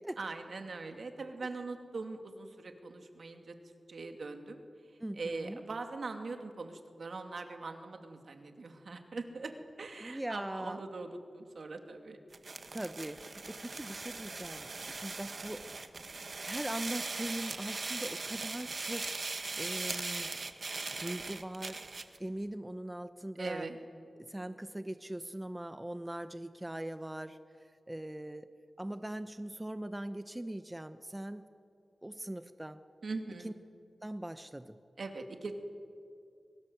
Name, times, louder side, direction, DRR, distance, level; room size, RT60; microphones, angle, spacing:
voice 1, 0.2-3.6 3.9-4.6 5.2-9.5 9.8-12.2 23.4-23.8 33.0-33.5 35.0-35.5, right 3 dB, 70° right, 5 dB, 2.6 m, -41 dB
voice 2, 5.0-5.6 10.0-10.8 12.7-15.6 16.4-20.3 21.0-21.8 22.2-23.7 24.2-27.4 27.9-28.5 28.8-31.5 32.0-32.8 33.4-33.5 34.0-34.8, right 1 dB, 15° right, 10 dB, 0.8 m, -41 dB
sound 1, 12.3-22.2, right 3 dB, 55° right, 1.6 m, -40 dB
24.5 x 23.5 x 8.0 m, 2.4 s
wide cardioid pair, 70°, 0 cm